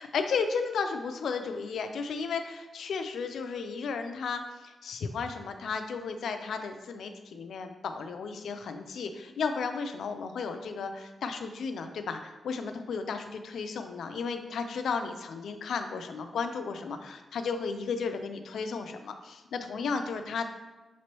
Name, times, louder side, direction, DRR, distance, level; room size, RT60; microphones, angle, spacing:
voice 1, 0.0-20.5, left 5 dB, 85° left, 7 dB, 0.4 m, -34 dB
5.9 x 3.1 x 2.9 m, 1.1 s
wide cardioid pair, 140°, 0 cm